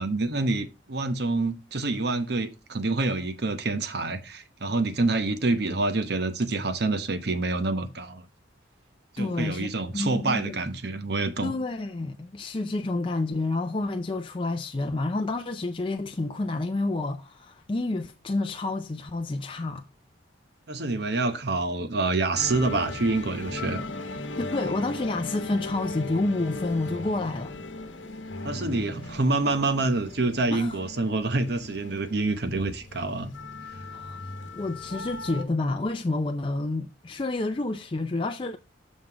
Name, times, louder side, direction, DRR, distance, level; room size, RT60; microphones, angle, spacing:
voice 1, 0.0-8.2 9.2-11.5 20.7-23.8 28.4-33.3, right 2 dB, 60° right, 0.9 m, -27 dB
voice 2, 9.2-10.6 11.4-19.9 24.4-27.6 30.5-30.8 33.9-34.2 34.5-38.6, left 2 dB, 30° left, 0.5 m, -29 dB
sound 1, 22.3-35.4, left 2 dB, 85° left, 0.9 m, -38 dB
6.3 x 5.7 x 4.6 m
head